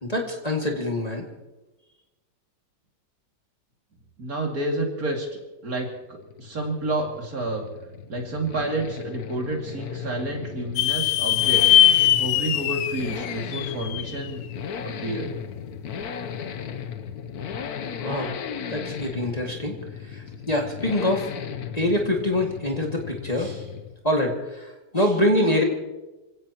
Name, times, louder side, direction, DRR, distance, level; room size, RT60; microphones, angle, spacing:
voice 1, 0.0-1.3 18.0-18.3 18.7-19.8 20.1-21.3 21.7-23.6 24.0-25.6, left 1 dB, 20° left, -1 dB, 2.2 m, -25 dB
voice 2, 4.2-7.7 8.1-11.7 12.2-14.4 14.8-15.4, right 2 dB, 55° right, 1 dB, 2.9 m, -30 dB
Accelerating revving vroom, 6.0-24.1 24.3-24.4, left 7 dB, 60° left, 1.3 m, -36 dB
sound 1, 10.8-14.3, left 12 dB, 80° left, 1.3 m, -20 dB
27.0 x 17.0 x 3.0 m, 1.1 s
omnidirectional pair, 1.9 m